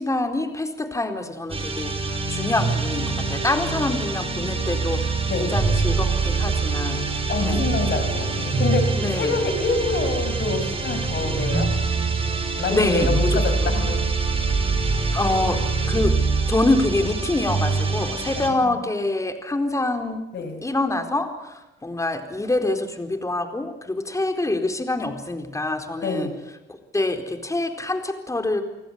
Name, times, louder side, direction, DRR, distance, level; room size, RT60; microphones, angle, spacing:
voice 1, 0.0-1.9 2.3-5.1 5.4-7.0 7.4-7.7 9.0-9.3 12.7-13.4 15.1-15.6 15.9-16.2 16.5-20.2 20.6-21.5 21.8-26.3 26.9-28.6, left 2 dB, 15° left, 6 dB, 4.2 m, -25 dB
sound 1, 1.5-18.5, right 4 dB, 30° right, 5.7 m, -24 dB
voice 2, 7.3-11.7 12.6-14.1 18.4-18.8 20.3-20.6 26.0-26.3, left 4 dB, 60° left, 8 dB, 6.3 m, -26 dB
29.5 x 19.5 x 8.2 m, 1.0 s
cardioid pair, 90°, 20 cm